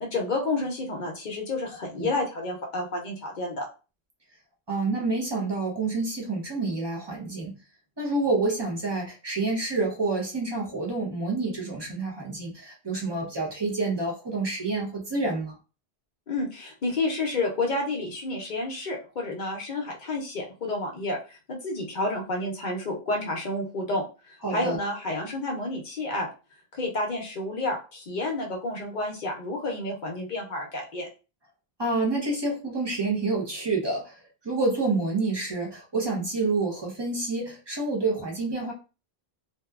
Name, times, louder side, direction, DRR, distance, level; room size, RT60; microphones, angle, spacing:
voice 1, 0.0-3.7 16.3-24.0 24.3-26.3 26.7-31.1, left 2 dB, 55° left, 0 dB, 0.7 m, -30 dB
voice 2, 4.7-7.5 8.0-15.5 24.4-24.8 31.8-38.7, right 3 dB, 30° right, -2 dB, 0.7 m, -28 dB
2.7 x 2.2 x 2.3 m, 0.32 s
omnidirectional pair, 1.1 m